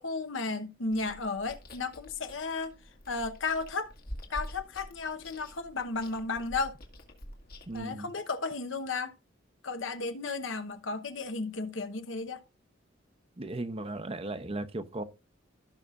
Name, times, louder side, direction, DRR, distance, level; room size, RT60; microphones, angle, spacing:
voice 1, 0.0-2.7 3.1-3.9 4.3-6.8 7.7-9.1 9.6-12.4, left 3 dB, 75° left, 0.9 m, -34 dB
Chewing mastication, 0.9-7.9, equal, 50° left, 1.7 m, -47 dB
voice 2, 7.7-8.1 13.4-15.0, right 2 dB, 30° right, 0.7 m, -36 dB
16.0 x 5.8 x 2.4 m
head